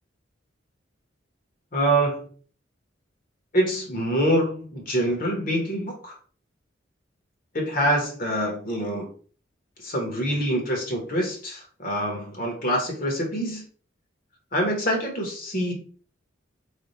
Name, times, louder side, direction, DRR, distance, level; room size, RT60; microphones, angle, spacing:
voice 1, 1.7-2.3 3.5-6.1 7.5-9.1 9.8-13.6 14.5-15.7, right 1 dB, 45° left, 1 dB, 1.2 m, -25 dB
3.4 x 2.4 x 4.1 m, 0.42 s
head